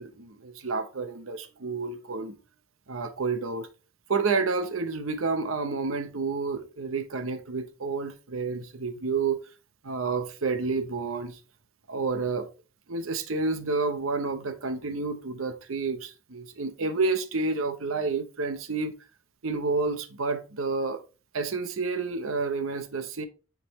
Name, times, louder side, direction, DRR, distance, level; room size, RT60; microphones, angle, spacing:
voice 1, 0.0-2.4 2.9-3.7 4.1-9.4 9.8-11.4 11.9-12.5 12.9-19.0 19.4-21.0 21.3-23.3, right 4 dB, 85° right, 0.8 m, -29 dB
9.9 x 3.8 x 3.1 m
head